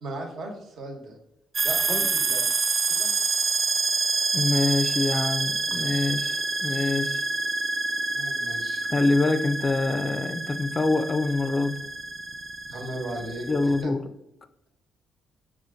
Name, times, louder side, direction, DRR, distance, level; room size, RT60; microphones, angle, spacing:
voice 1, 0.0-1.2 1.6-2.4 3.0-3.1 8.1-8.8 12.7-13.5 13.8-13.9, right 1 dB, 70° right, 2 dB, 1.1 m, -36 dB
sound 1, 1.5-13.8, right 3 dB, 40° right, 0.3 m, -28 dB
voice 2, 4.3-7.2 8.9-11.8 13.5-14.1, left 3 dB, 30° left, 10 dB, 0.4 m, -25 dB
5.0 x 2.5 x 3.8 m, 0.86 s
cardioid pair, 90°, 0 cm